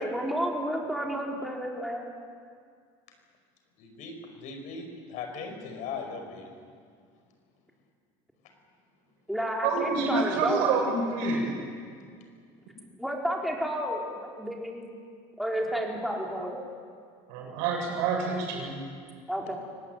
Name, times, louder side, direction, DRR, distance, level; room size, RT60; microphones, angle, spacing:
voice 1, 0.0-2.1 9.3-10.7 13.0-14.8 15.4-16.6 19.3-19.6, equal, ahead, -1 dB, 4.9 m, -31 dB
voice 2, 3.8-6.5, left 5 dB, 65° left, 5 dB, 5.4 m, -39 dB
voice 3, 9.6-11.6 17.3-18.8, right 4 dB, 85° right, 1 dB, 7.7 m, -27 dB
24.5 x 18.0 x 9.6 m, 2.1 s
supercardioid pair, 110°, 14 cm